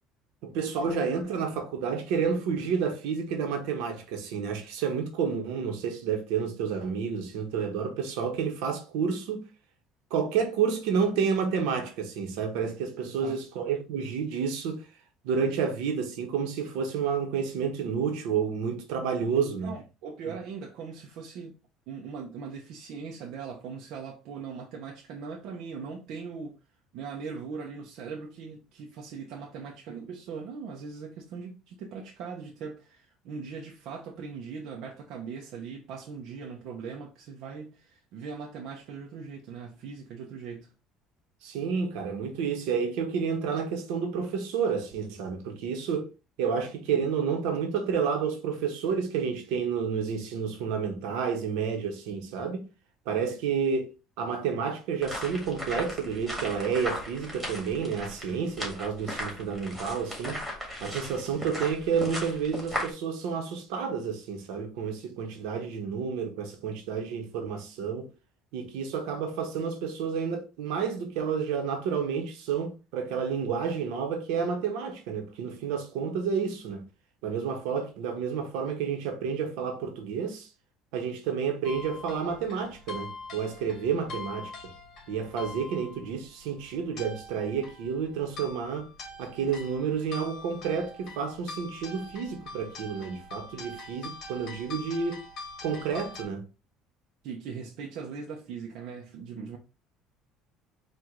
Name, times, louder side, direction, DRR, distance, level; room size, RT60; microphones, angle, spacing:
voice 1, 0.4-9.4 10.1-14.8 15.2-19.7 20.2-20.4 41.4-46.1 46.4-52.7 53.0-60.4 60.8-68.1 68.5-76.8 77.2-80.5 80.9-84.5 85.1-88.9 89.2-95.2 95.6-96.4, right 6 dB, 85° right, 1.1 m, -30 dB
voice 2, 13.0-13.4 19.3-21.5 21.9-26.6 26.9-40.7 84.0-84.1 97.2-99.6, right 5 dB, 70° right, 0.7 m, -40 dB
sound 1, 55.0-62.9, equal, 10° right, 1.8 m, -37 dB
sound 2, 81.6-96.2, left 2 dB, 50° left, 1.5 m, -44 dB
4.7 x 2.5 x 3.8 m
cardioid pair, 130°, 0 cm